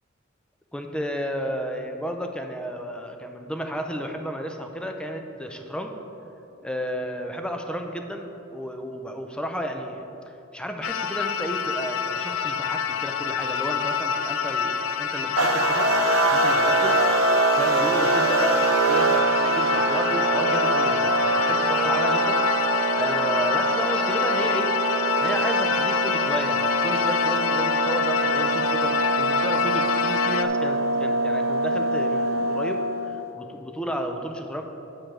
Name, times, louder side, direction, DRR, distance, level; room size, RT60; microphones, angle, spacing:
voice 1, 0.7-5.9 6.6-10.0 10.5-15.9 16.3-17.0 17.5-22.4 22.9-24.8 25.2-34.6, equal, 5° left, 4 dB, 0.5 m, -32 dB
sound 1, 10.8-30.5, left 7 dB, 65° left, 0.4 m, -26 dB
sound 2, 15.4-33.2, right 3 dB, 75° right, 0.7 m, -24 dB
8.8 x 5.0 x 6.0 m, 3.0 s
head